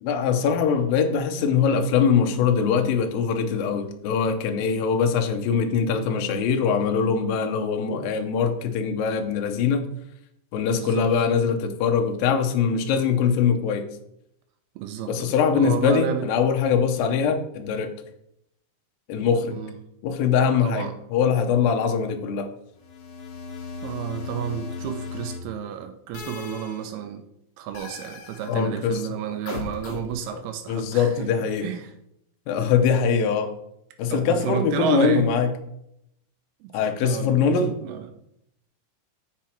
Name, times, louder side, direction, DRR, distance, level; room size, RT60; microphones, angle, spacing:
voice 1, 0.0-9.9 10.5-13.8 15.1-17.9 19.1-19.6 20.0-22.5 28.5-29.0 30.7-31.7 32.5-33.5 34.0-35.5 36.7-37.7, left 6 dB, 80° left, 5 dB, 2.0 m, -22 dB
voice 2, 10.8-11.1 14.8-16.3 19.5-19.8 20.6-20.9 23.8-27.3 27.6-31.3 31.6-31.9 34.1-35.3 36.6-38.1, right 9 dB, 80° right, 7 dB, 2.3 m, -31 dB
sound 1, 22.7-25.4 26.1-26.8 27.7-28.6 29.5-30.3, left 5 dB, 65° left, 2.5 m, -36 dB
8.5 x 5.2 x 4.3 m, 0.78 s
omnidirectional pair, 5.0 m